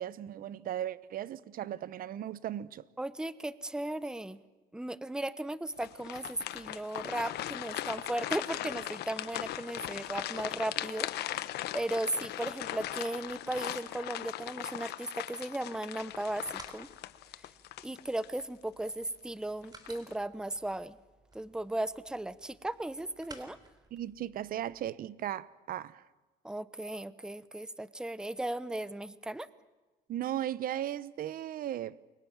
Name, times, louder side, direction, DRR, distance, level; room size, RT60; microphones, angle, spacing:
voice 1, 0.0-2.8 23.9-26.0 30.1-32.0, right 11 dB, 60° right, 1.0 m, -36 dB
voice 2, 3.0-4.4 4.7-16.9 17.8-21.0 21.3-23.6 26.4-29.5, right 1 dB, 5° right, 0.9 m, -36 dB
sound 1, 5.8-18.4 18.9-19.0 19.6-20.1, left 14 dB, 75° left, 1.1 m, -39 dB
sound 2, 16.0-24.9, right 2 dB, 25° right, 3.7 m, -57 dB
29.5 x 23.5 x 7.4 m
cardioid pair, 110°, 17 cm